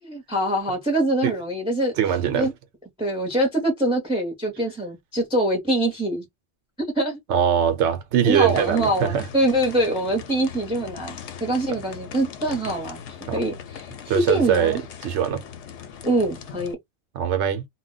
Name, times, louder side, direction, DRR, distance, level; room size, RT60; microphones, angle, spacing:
voice 1, 0.0-1.9 2.4-2.5 3.0-6.3 6.8-7.2 8.2-13.0 13.3-14.8 16.0-16.8, right 1 dB, 5° right, 0.7 m, -24 dB
voice 2, 2.0-2.5 7.3-9.2 13.3-13.4 14.1-15.4 17.1-17.7, right 9 dB, 85° right, 0.9 m, -22 dB
sound 1, 8.3-16.7, left 8 dB, 85° left, 0.9 m, -39 dB
2.2 x 2.1 x 3.8 m
omnidirectional pair, 1.2 m